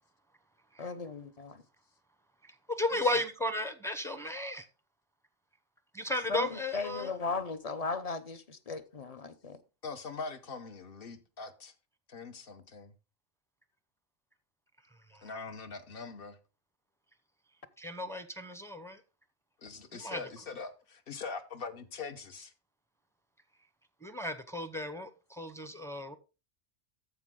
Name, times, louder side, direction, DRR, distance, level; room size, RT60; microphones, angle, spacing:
voice 1, 0.8-1.6 6.3-6.5 6.7-9.6, left 4 dB, 35° left, 0.8 m, -36 dB
voice 2, 2.8-4.6 5.9-7.1 17.8-19.0 19.9-20.2 24.0-25.1 25.4-26.2, left 1 dB, 5° left, 0.7 m, -34 dB
voice 3, 9.8-11.7 12.1-12.9 15.2-16.4 19.6-22.5, left 4 dB, 55° left, 1.2 m, -42 dB
14.0 x 4.9 x 3.7 m
omnidirectional pair, 1.2 m